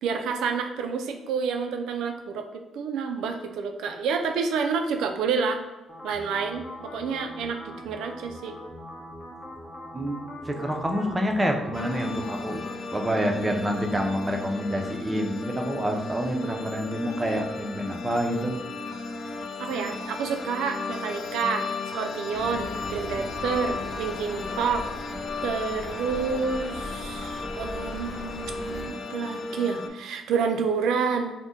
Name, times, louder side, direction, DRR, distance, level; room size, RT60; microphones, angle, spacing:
voice 1, 0.0-5.6 6.0-8.6 19.6-21.7 21.9-24.9 25.4-31.3, right 5 dB, 85° right, 5 dB, 0.3 m, -29 dB
sound 1, 5.9-12.7, left 1 dB, 30° left, 0.7 m, -42 dB
voice 2, 9.9-12.6 12.9-18.6, equal, 20° right, 2 dB, 0.5 m, -27 dB
sound 2, 11.7-29.9, left 3 dB, 55° left, 0.3 m, -35 dB
sound 3, 22.3-28.9, left 1 dB, ahead, 1.0 m, -40 dB
2.6 x 2.1 x 3.6 m, 1.1 s
cardioid pair, 90°, 0 cm